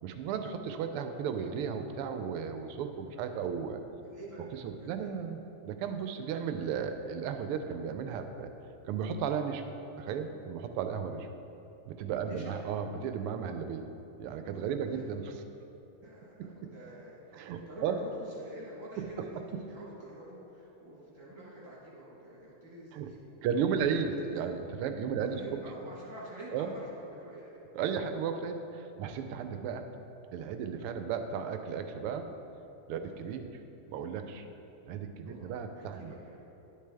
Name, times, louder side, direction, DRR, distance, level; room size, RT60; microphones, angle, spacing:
voice 1, 0.0-3.8 4.6-8.5 8.9-9.6 10.0-11.3 11.8-13.9 14.2-15.4 16.0-16.1 16.4-16.7 17.3-18.0 19.0-19.3 22.9-23.1 23.4-25.4 26.5-26.7 27.7-29.9 30.3-32.3 32.9-33.5 33.9-34.4 34.8-36.1, right 7 dB, 90° right, 7 dB, 1.5 m, -34 dB
voice 2, 4.0-4.5 4.8-5.1 12.2-12.6 14.9-15.0 16.0-19.4 19.7-23.6 23.9-24.1 25.3-27.5 33.0-33.2 35.2-36.4, right 1 dB, 40° right, -5 dB, 1.6 m, -48 dB
10.5 x 6.7 x 3.4 m, 2.9 s
omnidirectional pair, 2.4 m